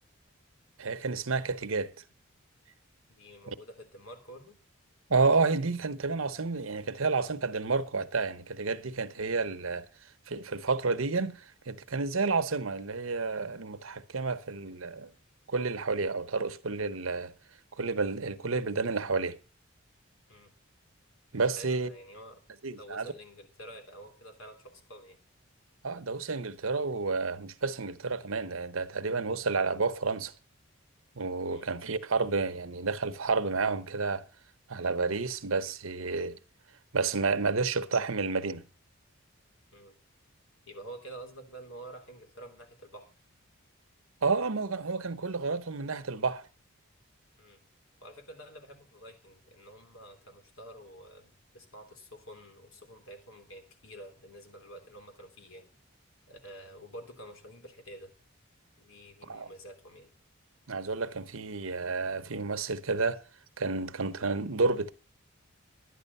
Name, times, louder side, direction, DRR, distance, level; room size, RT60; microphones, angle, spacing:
voice 1, 0.8-1.9 3.5-3.6 5.1-9.8 10.3-15.1 15.5-17.3 17.8-19.4 21.3-21.9 22.6-23.1 25.8-30.3 31.2-34.2 34.7-36.4 36.9-38.6 44.2-46.5 59.2-59.5 60.7-63.2 63.6-64.9, right 4 dB, 75° right, 1.0 m, -30 dB
voice 2, 3.1-4.6 20.3-20.5 21.5-22.4 22.7-25.2 31.5-31.7 39.7-40.0 40.7-43.1 47.4-47.6 48.0-55.7 56.3-58.1 58.8-60.1, right 1 dB, 70° left, 3.3 m, -49 dB
11.5 x 10.0 x 5.5 m
head